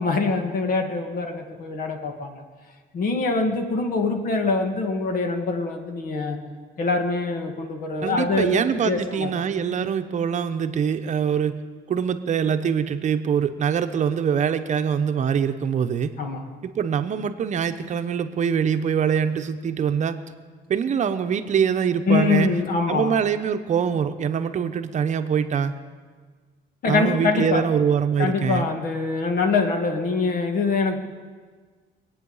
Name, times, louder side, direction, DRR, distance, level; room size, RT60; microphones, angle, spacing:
voice 1, 0.0-2.4 2.9-6.4 6.8-9.3 16.2-16.5 22.1-23.1 26.8-27.7 28.2-31.1, left 4 dB, 55° left, 4 dB, 2.1 m, -24 dB
voice 2, 8.0-11.6 11.9-16.1 16.6-20.2 20.7-22.5 22.9-25.7 26.9-28.7, right 7 dB, 45° right, 8 dB, 0.9 m, -24 dB
24.5 x 9.0 x 5.6 m, 1.5 s
cardioid pair, 110°, 17 cm